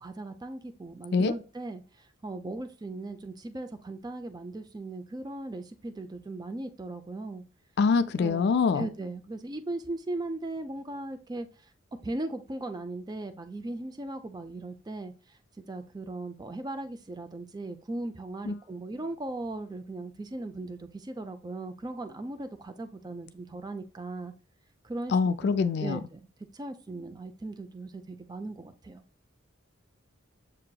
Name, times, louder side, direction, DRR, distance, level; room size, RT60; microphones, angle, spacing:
voice 1, 0.0-7.4 8.2-8.5 8.7-11.5 12.0-15.1 15.7-24.3 24.8-26.3 26.5-29.0, right 2 dB, 20° right, 0.4 m, -38 dB
voice 2, 7.8-8.9 18.5-18.6 25.1-26.0, left 5 dB, 55° left, 0.3 m, -24 dB
7.4 x 2.9 x 2.2 m
head